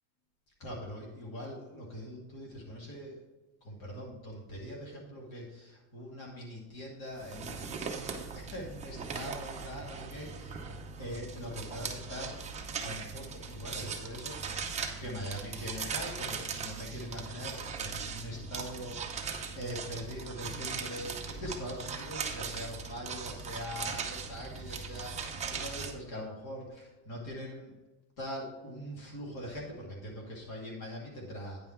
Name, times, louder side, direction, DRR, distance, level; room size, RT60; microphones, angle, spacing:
voice 1, 0.6-3.2 3.6-7.8 8.3-10.6 11.0-12.4 12.8-14.6 15.0-19.0 19.5-27.7 28.2-31.6, equal, 50° left, -3 dB, 2.5 m, -42 dB
sound 1, 7.2-25.9, right 5 dB, 15° right, 0.7 m, -39 dB
9.5 x 5.6 x 4.4 m, 1.1 s
cardioid pair, 165°, 46 cm